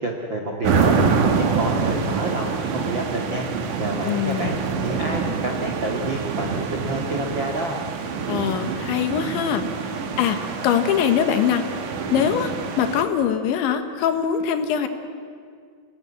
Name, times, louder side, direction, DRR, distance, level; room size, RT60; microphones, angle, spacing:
voice 1, 0.0-3.5 3.8-4.6 4.8-7.8, right 2 dB, 80° right, 1 dB, 1.0 m, -28 dB
sound 1, 0.6-13.0, right 5 dB, 60° right, 2.3 m, -26 dB
voice 2, 4.1-4.6 8.3-9.6 10.2-10.4 10.6-11.6 12.1-14.9, left 8 dB, 75° left, 8 dB, 3.6 m, -22 dB
28.5 x 17.5 x 9.8 m, 2.1 s
omnidirectional pair, 5.6 m